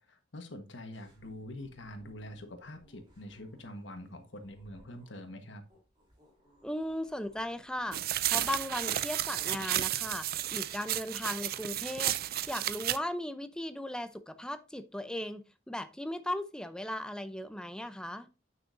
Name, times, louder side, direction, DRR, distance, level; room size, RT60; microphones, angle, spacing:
voice 1, 0.1-5.6, left 1 dB, 70° left, 1.4 m, -45 dB
sound 1, 0.9-8.9, equal, 25° right, 3.8 m, -63 dB
voice 2, 6.6-8.0 8.3-12.2 12.5-18.3, left 1 dB, 5° left, 0.6 m, -37 dB
sound 2, 7.9-13.0, right 13 dB, 50° right, 0.4 m, -32 dB
9.0 x 6.3 x 2.6 m
head